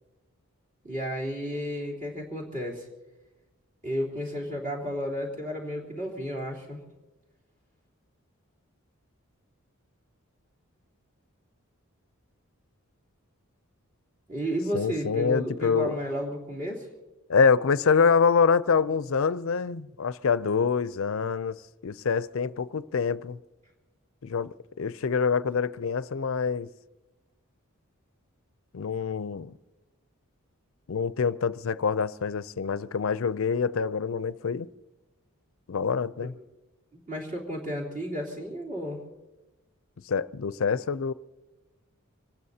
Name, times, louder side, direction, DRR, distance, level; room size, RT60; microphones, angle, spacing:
voice 1, 0.8-2.9 3.8-6.8 14.3-16.9 36.9-39.0, equal, 35° right, 3.4 m, -32 dB
voice 2, 14.7-16.0 17.3-23.4 24.2-26.7 28.7-29.5 30.9-34.7 35.7-36.3 40.1-41.1, left 5 dB, 65° left, 0.5 m, -26 dB
25.0 x 19.0 x 2.8 m
head